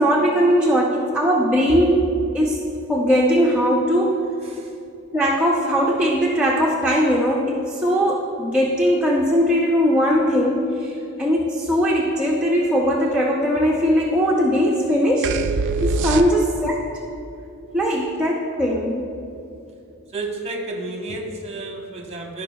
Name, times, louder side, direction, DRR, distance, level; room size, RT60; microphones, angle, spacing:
voice 1, 0.0-2.1 2.3-2.6 2.9-4.2 5.1-15.4 15.8-16.8 17.7-19.1, equal, 5° right, -4 dB, 0.6 m, -19 dB
voice 2, 4.4-4.7 16.2-16.3 17.9-18.0 20.1-22.4, right 2 dB, 30° right, 1 dB, 0.9 m, -32 dB
sound 1, 15.2-16.8, right 4 dB, 55° right, 0.3 m, -23 dB
15.5 x 5.2 x 2.3 m, 2.6 s
head